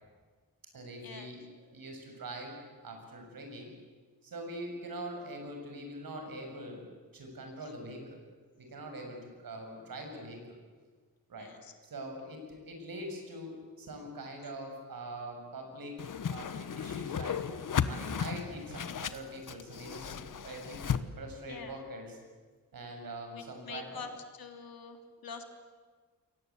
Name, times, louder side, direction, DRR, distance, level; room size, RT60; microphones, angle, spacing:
voice 1, 0.7-3.7 4.2-6.9 7.1-8.2 8.6-10.6 11.3-11.5 11.8-16.0 16.3-17.4 17.8-22.2 22.7-24.0, right 1 dB, 75° right, 3 dB, 7.3 m, -43 dB
voice 2, 11.4-11.7 21.5-21.8 23.3-24.1 24.4-25.0 25.2-25.4, left 5 dB, 85° left, 6 dB, 3.0 m, -45 dB
Whoosh swoosh swish, 16.0-21.0, left 7 dB, 65° left, 1.2 m, -35 dB
28.5 x 22.5 x 8.7 m, 1.5 s
wide cardioid pair, 165°, 35 cm